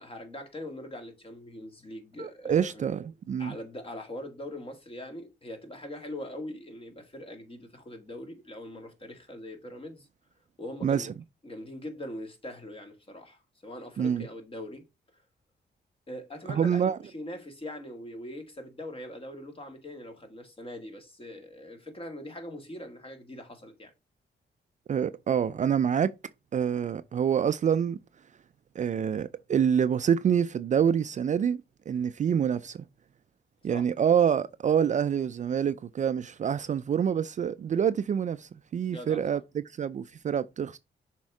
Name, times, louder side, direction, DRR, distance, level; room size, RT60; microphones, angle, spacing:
voice 1, 0.0-2.9 3.4-10.1 10.6-11.1 11.4-14.8 16.1-23.9 33.6-33.9 38.9-39.4, left 1 dB, 30° left, 1.8 m, -42 dB
voice 2, 2.2-3.5 10.8-11.1 14.0-14.2 16.5-17.0 24.9-26.1 26.5-28.0 28.8-31.6 31.9-32.8 33.6-40.8, right 8 dB, 45° right, 0.4 m, -26 dB
6.3 x 3.6 x 4.8 m
cardioid pair, 100°, 18 cm